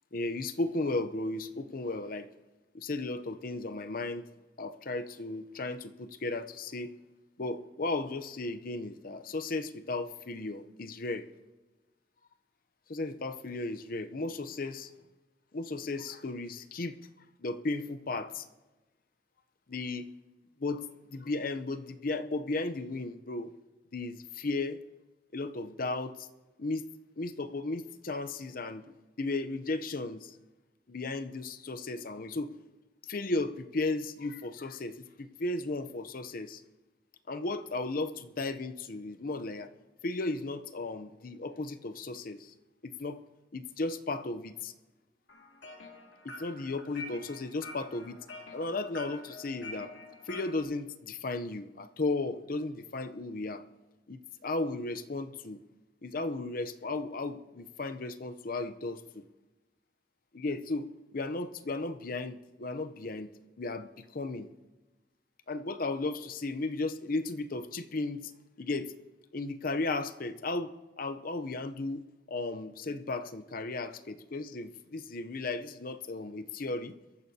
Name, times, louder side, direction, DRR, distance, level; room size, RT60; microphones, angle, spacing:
voice 1, 0.1-2.3 2.7-4.2 4.6-6.9 7.4-11.3 12.9-14.9 15.5-17.0 17.4-18.5 19.7-20.1 20.6-23.5 23.9-24.8 25.3-26.3 26.6-26.9 27.2-28.8 29.2-30.4 30.9-32.5 33.1-36.6 37.3-39.7 40.0-42.5 42.8-43.2 43.5-44.7 46.2-48.2 48.5-49.9 50.3-53.6 54.1-55.6 56.0-59.2 60.3-63.3 63.6-64.5 65.5-68.3 68.6-68.9 69.3-76.9, left 2 dB, 50° left, 10 dB, 0.7 m, -35 dB
sound 1, 45.3-50.6, left 2 dB, 85° left, 2.4 m, -47 dB
23.0 x 13.5 x 2.8 m, 1.2 s
head